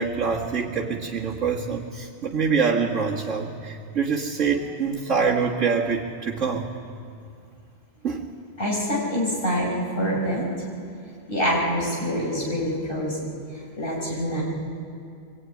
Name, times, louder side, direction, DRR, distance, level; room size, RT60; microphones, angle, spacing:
voice 1, 0.0-6.7 8.0-8.2, right 5 dB, 85° right, -5 dB, 2.1 m, -25 dB
voice 2, 8.6-10.5 11.3-13.3 13.8-14.4, equal, 45° left, -4 dB, 6.5 m, -25 dB
24.0 x 19.5 x 9.7 m, 2.5 s
omnidirectional pair, 1.3 m